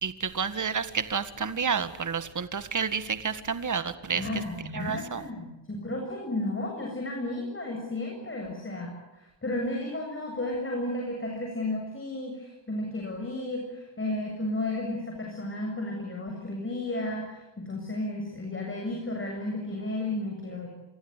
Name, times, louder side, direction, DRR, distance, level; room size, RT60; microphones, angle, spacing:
voice 1, 0.0-4.2 4.7-5.2, right 6 dB, 40° right, 11 dB, 1.8 m, -30 dB
voice 2, 4.1-20.7, left 1 dB, 25° left, 1 dB, 7.8 m, -33 dB
29.0 x 25.0 x 8.2 m, 0.99 s
wide cardioid pair, 135°, 45 cm